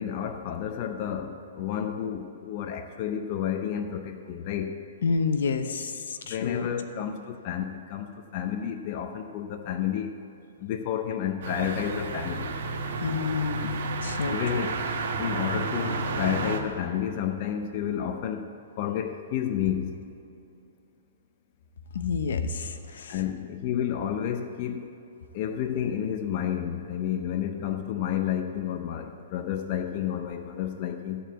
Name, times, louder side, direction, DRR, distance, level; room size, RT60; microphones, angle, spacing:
voice 1, 0.0-4.8 5.6-5.8 6.3-10.1 10.6-12.6 14.3-14.8 15.2-18.5 18.8-20.0 23.1-24.9 25.3-31.2, left 9 dB, 40° left, 5 dB, 0.6 m, -30 dB
voice 2, 5.0-6.7 13.0-14.7 21.9-23.2, left 5 dB, 75° left, 8 dB, 0.8 m, -29 dB
sound 1, 11.4-16.6, right 3 dB, 60° right, 1.1 m, -31 dB
13.5 x 4.6 x 8.0 m, 2.7 s
hypercardioid pair, 155°, 0 cm